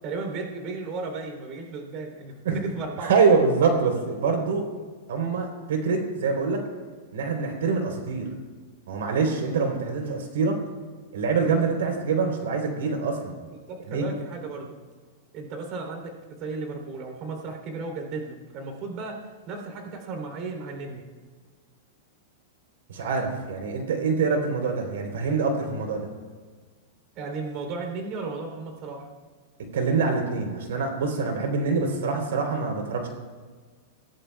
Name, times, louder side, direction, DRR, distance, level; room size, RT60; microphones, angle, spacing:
voice 1, 0.0-3.2 13.4-14.7 15.3-19.2 19.4-21.0 27.1-29.1, right 3 dB, 40° right, 3 dB, 3.2 m, -35 dB
voice 2, 3.0-4.6 5.1-6.6 7.1-8.3 8.9-10.5 11.1-13.3 13.9-14.1 22.9-26.1 29.7-33.1, right 4 dB, 85° right, 3 dB, 3.5 m, -25 dB
25.5 x 17.5 x 2.3 m, 1.5 s
supercardioid pair, 155°, 0 cm